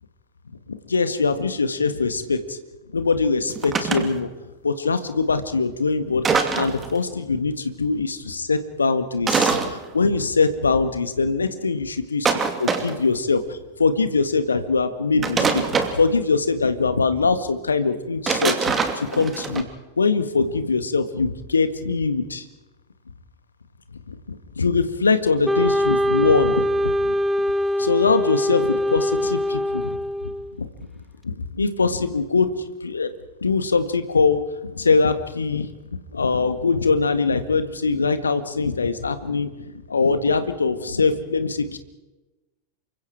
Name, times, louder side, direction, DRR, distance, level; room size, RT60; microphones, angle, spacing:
voice 1, 0.7-2.6 2.9-4.3 4.6-18.5 19.0-19.6 20.0-22.4 24.1-27.1 27.8-30.0 30.6-30.7 31.2-32.5 32.8-33.1 33.4-35.7 36.1-39.5 39.9-41.8, left 4 dB, 75° left, 10 dB, 1.7 m, -22 dB
sound 1, 3.5-4.1 6.2-6.9 9.3-9.7 12.2-13.0 15.2-16.0 18.3-19.6, right 5 dB, 20° right, 2.5 m, -23 dB
Wind instrument woodwind instrument, 25.4-30.6, equal, 5° right, 0.9 m, -23 dB
28.5 x 24.5 x 4.7 m, 1.1 s
figure-of-eight pair, 90°, 0 cm